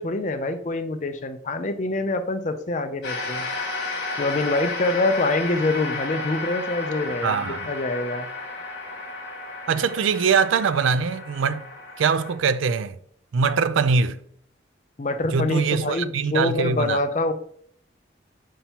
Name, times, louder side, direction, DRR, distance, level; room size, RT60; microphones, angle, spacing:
voice 1, 0.0-3.5 4.2-8.3 15.0-17.3, left 2 dB, 40° left, 0.5 m, -25 dB
sound 1, 3.0-12.4, left 3 dB, 55° left, 1.7 m, -32 dB
voice 2, 7.2-7.7 9.7-11.7 12.0-12.9 13.3-14.2 15.3-17.0, right 5 dB, 85° right, 0.4 m, -22 dB
7.2 x 5.5 x 2.9 m
head